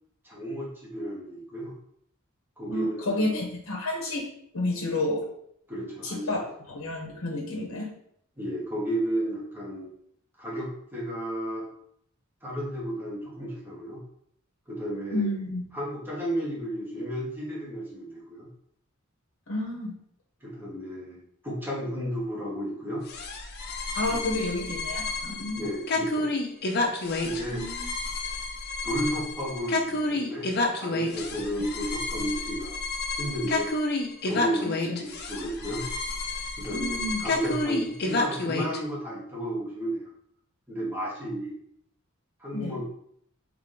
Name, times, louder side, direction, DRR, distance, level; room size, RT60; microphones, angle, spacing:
voice 1, 0.2-1.8 2.6-3.4 5.7-6.3 8.4-9.9 10.4-11.7 12.4-14.0 14.7-15.2 15.7-18.5 20.4-23.0 24.1-24.4 25.6-26.3 27.2-27.6 28.8-32.8 33.2-33.7 34.3-35.8 36.6-40.1 40.7-41.6 42.4-42.8, equal, 10° right, -6 dB, 1.3 m, -33 dB
voice 2, 2.7-4.2 4.5-5.2 6.0-6.4 6.7-7.9 15.1-15.6 19.5-19.9 23.9-25.7 27.5-27.9 34.9-35.0 36.7-37.2 42.5-42.8, left 2 dB, 70° left, -1 dB, 0.9 m, -30 dB
sound 1, 23.1-38.8, left 2 dB, 50° left, 0.6 m, -30 dB
3.7 x 3.2 x 3.7 m, 0.70 s
head